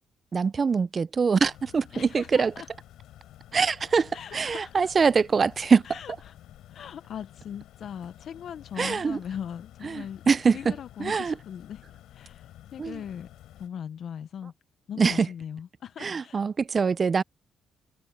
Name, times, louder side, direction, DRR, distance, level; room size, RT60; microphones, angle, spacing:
voice 1, 0.3-2.5 3.5-5.8 8.8-9.2 9.8-10.7 11.0-11.3 12.8-13.0 15.0-15.3 16.0-17.2, right 5 dB, 40° right, 0.4 m, -24 dB
sound 1, 1.3-13.7, left 13 dB, 85° left, 4.0 m, -51 dB
voice 2, 1.9-2.7 4.1-4.9 5.8-6.3 6.7-10.2 10.5-11.8 12.1-13.3 13.6-14.5 14.9-16.4, left 8 dB, 65° left, 0.7 m, -39 dB
cardioid pair, 90°, 0 cm